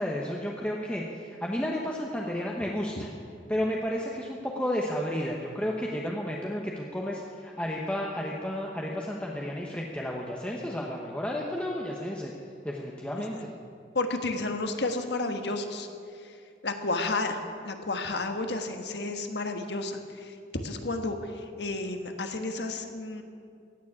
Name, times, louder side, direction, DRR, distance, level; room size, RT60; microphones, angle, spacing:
voice 1, 0.0-3.1 3.5-12.3 12.6-13.5, equal, 5° left, -2 dB, 1.0 m, -32 dB
voice 2, 13.9-15.9 16.6-21.2 21.6-23.2, left 2 dB, 75° left, 6 dB, 1.4 m, -31 dB
16.0 x 7.3 x 9.7 m, 2.4 s
head